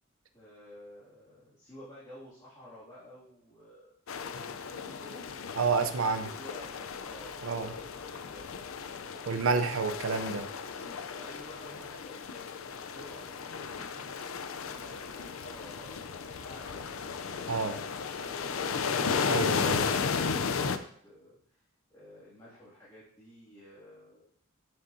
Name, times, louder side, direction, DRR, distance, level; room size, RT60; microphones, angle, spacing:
voice 1, 0.3-3.9 4.9-5.2 6.0-8.6 9.1-10.0 11.1-14.1 14.6-17.2 18.1-21.6 21.9-24.3, left 1 dB, 20° left, -11 dB, 2.4 m, -52 dB
sound 1, 4.1-20.8, left 5 dB, 85° left, 0.5 m, -34 dB
voice 2, 5.6-6.3 7.4-7.7 9.3-10.5 17.5-17.8 19.3-19.8, right 4 dB, 80° right, 9 dB, 0.6 m, -29 dB
9.1 x 6.6 x 2.7 m, 0.62 s
head